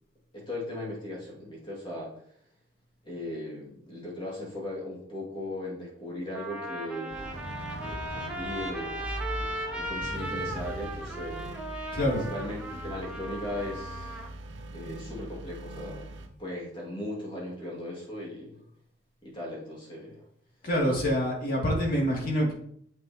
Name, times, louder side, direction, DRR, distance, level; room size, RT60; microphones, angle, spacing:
voice 1, 0.3-2.1 3.0-7.4 7.8-11.4 12.1-14.2 14.7-18.6 19.2-20.2, left 1 dB, 25° left, -4 dB, 2.1 m, -38 dB
Trumpet, 5.6-5.7 6.3-14.3, right 1 dB, 5° right, 0.9 m, -37 dB
sound 1, 7.1-16.3, right 1 dB, 70° right, 0.9 m, -40 dB
voice 2, 11.9-12.2 20.6-22.5, equal, 50° left, -3 dB, 2.4 m, -26 dB
7.6 x 6.4 x 2.8 m, 0.66 s
head